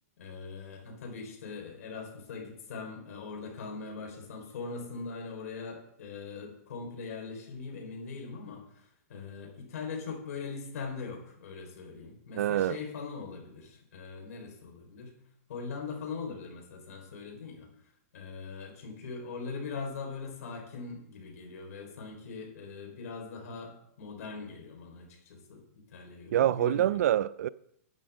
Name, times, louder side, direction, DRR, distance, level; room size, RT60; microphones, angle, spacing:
voice 1, 0.2-15.1 15.5-17.7 18.1-27.0, left 4 dB, 70° left, 4.2 m, -41 dB
voice 2, 12.3-12.8 26.3-27.5, right 12 dB, 70° right, 0.4 m, -26 dB
11.5 x 8.6 x 3.6 m
hypercardioid pair, 155°, 9 cm